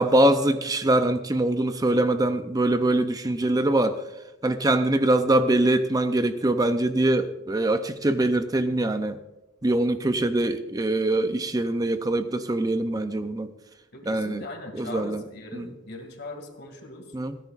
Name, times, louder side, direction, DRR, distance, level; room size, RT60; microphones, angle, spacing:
voice 1, 0.0-4.1 4.4-9.2 9.6-13.5 14.0-14.4 14.7-15.3 15.5-15.7 17.1-17.4, right 1 dB, 20° right, 9 dB, 0.5 m, -23 dB
voice 2, 13.9-17.1, left 2 dB, 60° left, 5 dB, 2.3 m, -40 dB
27.5 x 10.5 x 2.5 m, 0.99 s
head